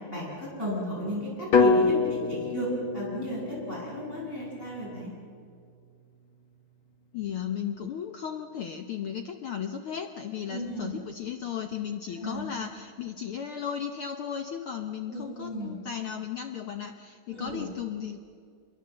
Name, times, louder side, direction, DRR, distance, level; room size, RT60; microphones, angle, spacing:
voice 1, 0.1-2.7 2.9-5.1 10.5-10.9 12.2-12.4 15.1-15.7 17.3-17.6, equal, 15° left, -4 dB, 8.0 m, -34 dB
sound 1, 1.5-5.6, left 4 dB, 50° left, 1.9 m, -27 dB
voice 2, 7.1-18.2, left 8 dB, 65° left, 6 dB, 1.3 m, -35 dB
26.5 x 22.5 x 7.7 m, 2.3 s
omnidirectional pair, 3.5 m